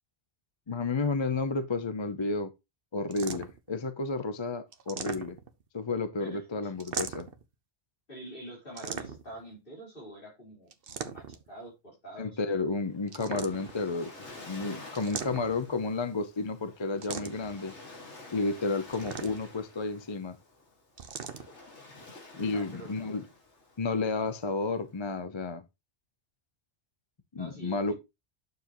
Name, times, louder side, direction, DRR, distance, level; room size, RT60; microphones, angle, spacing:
voice 1, 0.7-2.5 2.9-5.4 5.7-7.3 12.2-14.1 14.5-17.7 18.3-20.4 22.3-23.2 23.8-25.6 27.3-27.9, left 3 dB, 30° left, 0.6 m, -31 dB
sound 1, 3.1-3.7 4.7-5.6 6.8-7.4 8.8-9.4 10.7-11.5 13.1-13.8 15.0-15.7 17.0-17.6 18.9-19.6 21.0-21.5, right 6 dB, 55° right, 1.0 m, -39 dB
voice 2, 6.2-6.7 8.1-12.6 22.3-23.0 27.3-27.9, right 1 dB, 50° left, 4.4 m, -46 dB
Waves surf, 12.7-25.1, left 2 dB, 85° left, 2.3 m, -50 dB
9.4 x 6.8 x 3.0 m
omnidirectional pair, 1.2 m